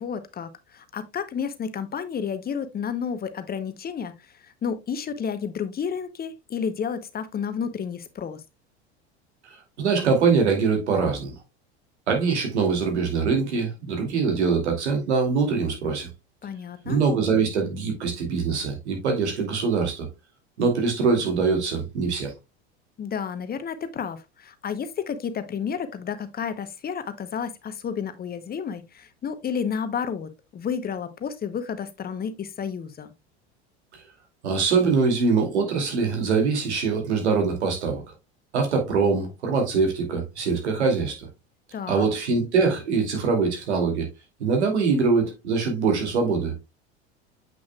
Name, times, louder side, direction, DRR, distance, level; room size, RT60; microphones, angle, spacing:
voice 1, 0.0-8.4 16.4-17.0 23.0-33.1 41.7-42.1, left 7 dB, 30° left, 0.8 m, -31 dB
voice 2, 9.8-11.3 12.1-16.1 16.8-20.1 20.6-22.3 33.9-34.0 34.4-38.0 38.5-41.3 41.9-44.1 44.4-46.5, right 5 dB, 80° right, 2.5 m, -23 dB
7.7 x 6.0 x 2.2 m
hypercardioid pair, 80°, 33 cm